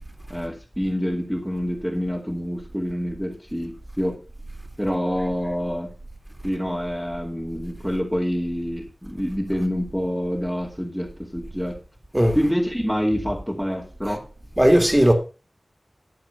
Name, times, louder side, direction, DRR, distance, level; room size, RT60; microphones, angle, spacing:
voice 1, 0.3-4.2 4.8-5.9 6.4-11.8 12.3-14.3, equal, ahead, 2.7 m, -27 dB
voice 2, 14.6-15.1, equal, 15° right, 3.0 m, -16 dB
12.5 x 7.6 x 5.9 m
wide cardioid pair, 65°, 0 cm